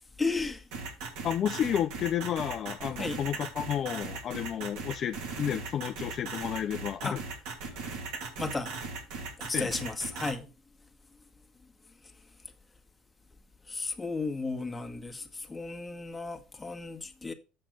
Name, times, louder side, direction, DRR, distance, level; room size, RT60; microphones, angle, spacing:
voice 1, 0.2-0.7 3.0-3.2 7.0-7.2 8.4-8.8 9.4-10.4 13.7-17.3, left 3 dB, 15° left, 1.6 m, -34 dB
sound 1, 0.7-10.3, right 4 dB, 75° right, 2.7 m, -38 dB
voice 2, 1.2-7.2 7.7-7.8 9.5-9.7, left 9 dB, 50° left, 0.6 m, -31 dB
7.8 x 5.9 x 5.1 m
supercardioid pair, 80°, 0 cm